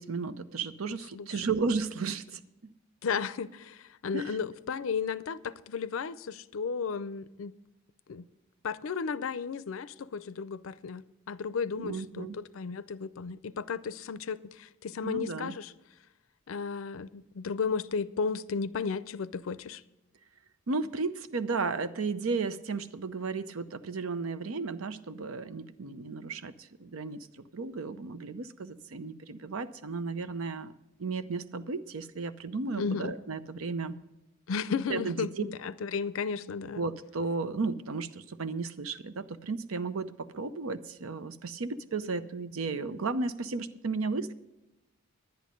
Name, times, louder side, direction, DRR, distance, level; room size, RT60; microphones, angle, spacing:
voice 1, 0.0-2.7 4.1-4.4 11.8-12.4 15.0-15.5 20.7-27.3 27.5-30.7 31.0-33.9 34.9-35.5 36.8-44.3, right 4 dB, 85° right, 0.7 m, -34 dB
voice 2, 3.0-7.5 8.1-8.3 8.6-15.7 16.5-19.8 32.8-33.1 34.5-36.8, left 5 dB, 70° left, 0.5 m, -34 dB
10.5 x 10.5 x 5.2 m
head